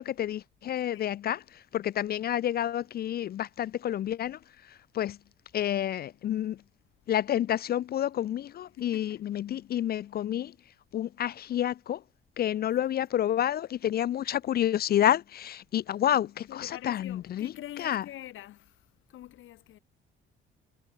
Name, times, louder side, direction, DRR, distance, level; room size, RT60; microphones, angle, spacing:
voice 1, 0.0-1.4 1.7-4.4 4.9-5.2 5.5-6.6 7.1-10.5 10.9-12.0 12.4-17.5 17.8-18.0, left 11 dB, 50° left, 0.4 m, -29 dB
voice 2, 0.9-1.2 8.8-9.2 12.5-12.6 16.5-19.8, left 13 dB, 80° left, 4.0 m, -46 dB
cardioid pair, 90°, 20 cm